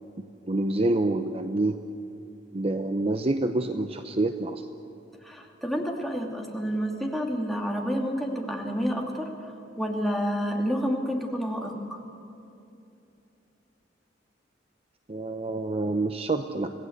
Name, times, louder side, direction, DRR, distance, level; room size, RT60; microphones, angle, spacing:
voice 1, 0.4-1.8 2.5-4.7 15.1-16.7, right 2 dB, 35° right, 7 dB, 0.8 m, -27 dB
voice 2, 5.2-9.3 9.8-12.0, equal, ahead, 0 dB, 2.6 m, -29 dB
26.5 x 17.5 x 8.1 m, 2.8 s
head